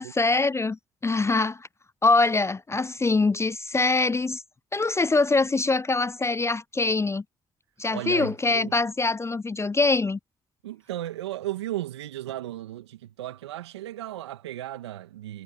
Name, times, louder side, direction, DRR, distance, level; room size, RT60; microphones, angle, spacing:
voice 1, 0.0-1.7 2.0-4.4 4.7-7.2 7.8-10.2, left 3 dB, 20° left, 0.4 m, -24 dB
voice 2, 7.9-8.8 10.6-15.4, right 14 dB, 85° right, 2.0 m, -35 dB
hypercardioid pair, 45°, 14 cm